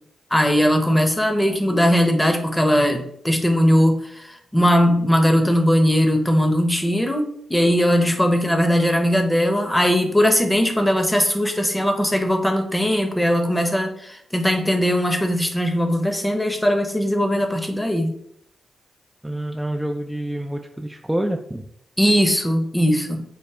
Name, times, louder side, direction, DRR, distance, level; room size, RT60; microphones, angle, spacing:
voice 1, 0.3-18.1 22.0-23.2, equal, 10° left, 5 dB, 0.8 m, -19 dB
voice 2, 19.2-21.7, right 1 dB, 5° right, 3 dB, 0.3 m, -27 dB
4.8 x 2.1 x 3.2 m, 0.71 s
supercardioid pair, 45°, 0 cm